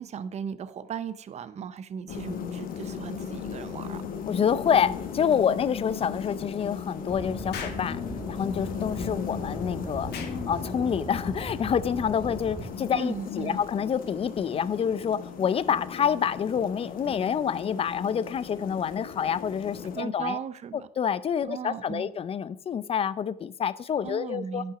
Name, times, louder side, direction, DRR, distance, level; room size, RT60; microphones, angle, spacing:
voice 1, 0.0-4.0 12.9-13.6 20.0-20.9 21.5-22.1 24.0-24.7, right 7 dB, 40° right, 0.6 m, -37 dB
sound 1, 2.1-20.0, left 7 dB, 55° left, 1.1 m, -37 dB
voice 2, 4.3-8.0 8.3-20.4 21.0-24.6, left 8 dB, 35° left, 0.5 m, -27 dB
sound 2, 7.1-12.7, right 1 dB, 15° right, 1.7 m, -39 dB
Explosion, 7.5-7.9 10.1-10.4, left 7 dB, 70° left, 1.5 m, -37 dB
8.9 x 5.7 x 4.9 m
cardioid pair, 110°, 17 cm